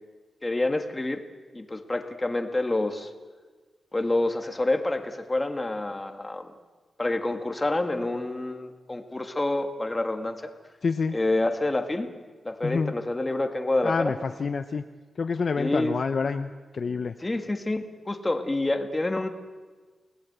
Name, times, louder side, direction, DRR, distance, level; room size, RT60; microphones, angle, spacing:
voice 1, 0.4-1.2 1.5-3.1 3.9-6.5 7.0-10.4 11.1-12.1 12.4-14.1 15.6-15.9 17.2-19.3, left 2 dB, 15° left, 6 dB, 1.8 m, -27 dB
voice 2, 10.8-11.2 12.6-12.9 13.8-14.8 15.2-17.1, left 5 dB, 50° left, 8 dB, 0.8 m, -28 dB
28.5 x 19.0 x 8.1 m, 1.4 s
wide cardioid pair, 135°, 0 cm